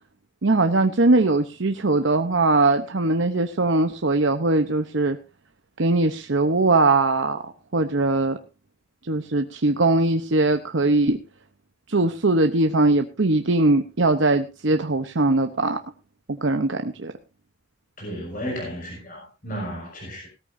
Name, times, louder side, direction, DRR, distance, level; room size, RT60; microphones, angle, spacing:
voice 1, 0.4-5.2 5.8-8.4 9.0-11.2 11.9-15.8 16.3-17.1, right 2 dB, 60° right, 6 dB, 0.9 m, -21 dB
voice 2, 18.0-20.3, equal, 40° left, -3 dB, 6.1 m, -33 dB
18.0 x 13.5 x 2.7 m, 0.29 s
head